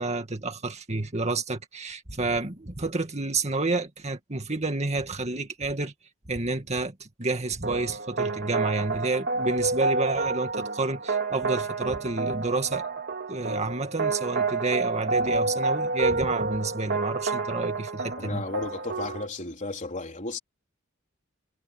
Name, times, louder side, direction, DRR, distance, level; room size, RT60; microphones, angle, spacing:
voice 1, 0.0-5.9 6.3-12.8 13.3-18.5, right 3 dB, 35° right, 2.2 m, -29 dB
sound 1, 7.6-19.3, right 3 dB, 55° right, 3.6 m, -29 dB
voice 2, 18.2-20.4, left 2 dB, 40° left, 4.0 m, -34 dB
head